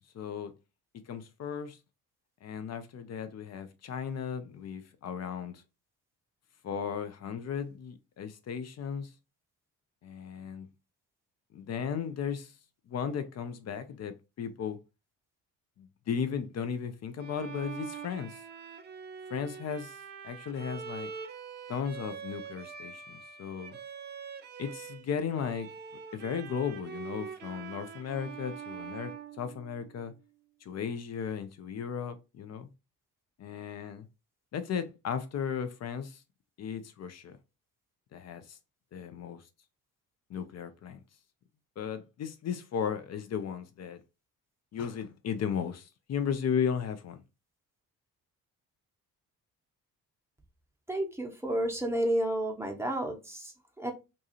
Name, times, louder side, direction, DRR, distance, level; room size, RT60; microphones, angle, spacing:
voice 1, 0.1-0.5 1.1-1.8 2.4-5.6 6.6-9.1 10.0-10.7 11.5-12.5 12.9-14.8 15.8-18.4 19.3-20.0 20.2-21.1 21.7-23.8 24.6-25.7 26.1-30.1 30.6-32.7 33.4-34.1 34.5-36.2 36.6-37.4 38.1-38.6 38.9-39.4 40.3-41.0 41.8-44.0 44.7-47.2, left 7 dB, 35° left, 0.5 m, -35 dB
Bowed string instrument, 17.2-25.0 25.3-30.1, right 7 dB, 25° right, 0.3 m, -44 dB
voice 2, 50.9-53.9, right 1 dB, 5° right, 0.8 m, -31 dB
2.7 x 2.3 x 2.9 m
figure-of-eight pair, 45°, 46 cm